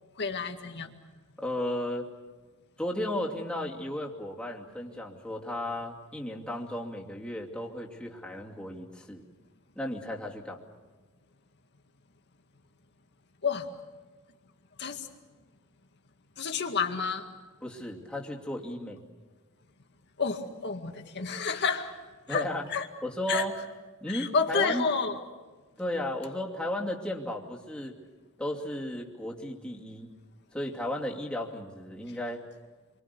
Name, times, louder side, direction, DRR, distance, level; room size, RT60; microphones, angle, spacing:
voice 1, 0.2-0.9 13.4-13.7 14.8-15.1 16.4-17.3 20.2-21.9 22.3-22.9 23.3-23.5 24.1-25.1, left 5 dB, 55° left, 5 dB, 2.1 m, -30 dB
voice 2, 1.4-2.1 2.8-9.2 9.8-10.6 17.6-19.1 22.3-22.7 23.0-23.6 24.0-24.9 25.8-28.0 28.4-30.1 30.5-32.4, left 1 dB, 5° left, -2 dB, 2.6 m, -34 dB
28.5 x 24.0 x 6.9 m, 1.3 s
head